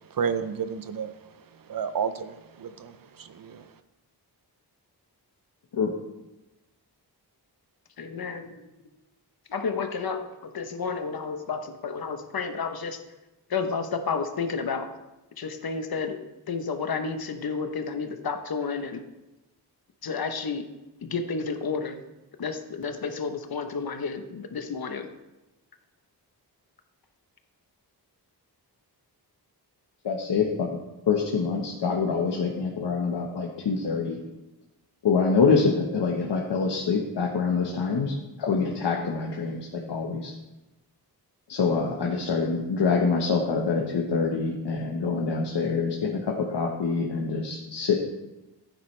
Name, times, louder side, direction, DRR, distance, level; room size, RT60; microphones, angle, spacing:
voice 1, 0.2-1.1 1.7-3.6, right 7 dB, 55° right, 11 dB, 0.7 m, -31 dB
voice 2, 8.0-8.6 9.5-13.0 13.5-14.9 15.4-16.2 16.5-19.0 20.0-20.6 21.0-22.0 22.4-25.1, left 5 dB, 60° left, 7 dB, 1.0 m, -31 dB
voice 3, 30.0-30.7 31.1-34.2 35.0-40.3 41.5-48.0, left 5 dB, 85° left, -1 dB, 1.3 m, -25 dB
15.5 x 9.3 x 3.3 m, 1.0 s
wide cardioid pair, 180°, 40 cm